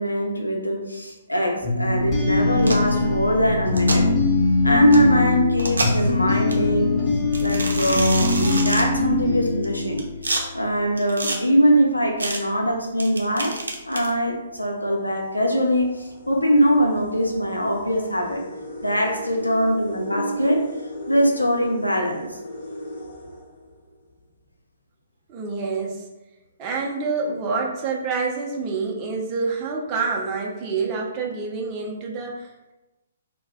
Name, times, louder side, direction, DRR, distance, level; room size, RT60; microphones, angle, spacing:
voice 1, 0.0-4.1 4.6-7.0 7.4-10.0 10.5-13.6 13.9-18.4 18.8-20.7 21.1-22.3, equal, 90° left, 1 dB, 0.5 m, -22 dB
sound 1, 1.6-10.3, left 3 dB, 20° left, 1.0 m, -22 dB
sound 2, 2.6-2.9 3.7-4.0 4.9-5.0 5.6-6.1 6.5-6.6 7.3-8.8 9.6-10.4 11.0-11.4 12.2-12.4 13.0-14.1, right 2 dB, 75° right, 0.5 m, -27 dB
sound 3, 14.4-24.2, left 1 dB, 45° left, 0.9 m, -38 dB
voice 2, 25.3-26.1 26.6-32.7, right 4 dB, 25° right, -2 dB, 0.5 m, -27 dB
2.4 x 2.1 x 3.4 m, 1.0 s
figure-of-eight pair, 130°, 0 cm